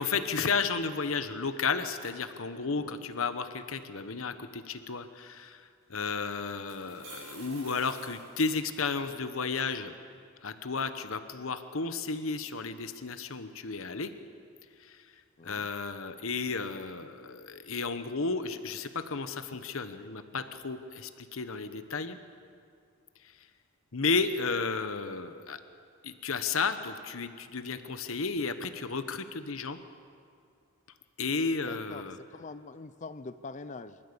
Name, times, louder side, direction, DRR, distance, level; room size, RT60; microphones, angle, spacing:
voice 1, 0.0-9.9 10.4-14.1 14.8-15.0 15.4-22.2 23.2-23.3 23.9-25.6 26.0-29.8 31.2-32.2, left 4 dB, 70° left, 10 dB, 1.1 m, -33 dB
sound 1, 5.8-5.9 6.5-9.0, right 2 dB, 60° right, 7.5 m, -49 dB
voice 2, 15.4-15.7 31.6-34.0, left 3 dB, 35° left, 13 dB, 0.5 m, -44 dB
28.0 x 13.5 x 6.8 m, 2.3 s
head